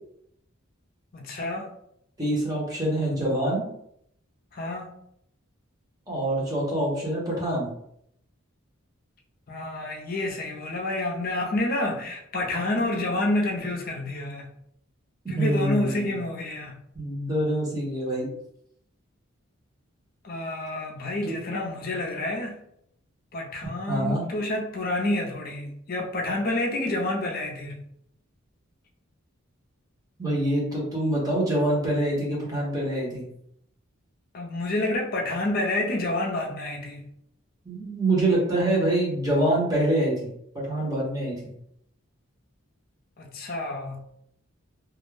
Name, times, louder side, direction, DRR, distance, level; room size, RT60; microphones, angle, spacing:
voice 1, 1.1-1.7 4.5-4.9 9.5-14.5 15.3-16.8 20.2-22.6 23.3-27.8 34.3-37.1 43.2-44.0, left 2 dB, 45° left, 0.5 m, -29 dB
voice 2, 2.2-3.6 6.1-7.7 15.3-16.1 16.9-18.3 21.2-21.4 23.9-24.2 30.2-33.2 37.6-40.3 40.5-41.4, right 1 dB, 15° right, 0.8 m, -25 dB
2.3 x 2.0 x 3.2 m
head